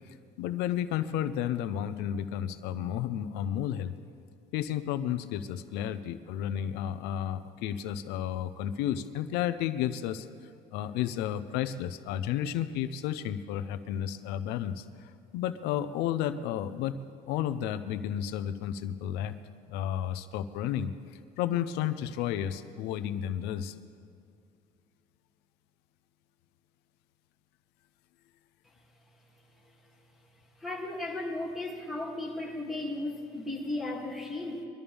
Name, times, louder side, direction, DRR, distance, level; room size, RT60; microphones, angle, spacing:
voice 1, 0.1-3.9 4.5-10.3 10.7-17.0 17.3-19.3 19.7-20.9 21.4-23.7, left 10 dB, 80° left, 11 dB, 0.8 m, -32 dB
voice 2, 30.6-34.6, left 2 dB, ahead, -1 dB, 2.6 m, -35 dB
23.0 x 13.0 x 3.5 m, 2.4 s
cardioid pair, 125°, 17 cm